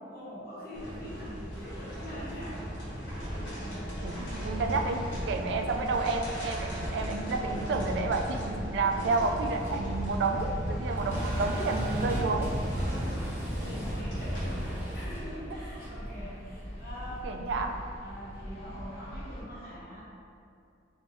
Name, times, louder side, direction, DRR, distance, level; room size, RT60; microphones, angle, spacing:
voice 1, 0.1-2.6 3.5-3.9 10.9-11.2 12.7-17.5 18.0-20.0, equal, 50° left, -7 dB, 0.9 m, -43 dB
sound 1, 0.7-14.7, equal, 85° left, 1.3 m, -35 dB
sound 2, 3.1-19.4, equal, 30° left, 0.5 m, -42 dB
voice 2, 4.0-12.6 17.2-17.8, right 3 dB, 70° right, 5 dB, 0.3 m, -30 dB
sound 3, 9.4-17.3, right 1 dB, 10° right, 0.7 m, -42 dB
3.4 x 3.1 x 2.9 m, 2.5 s
head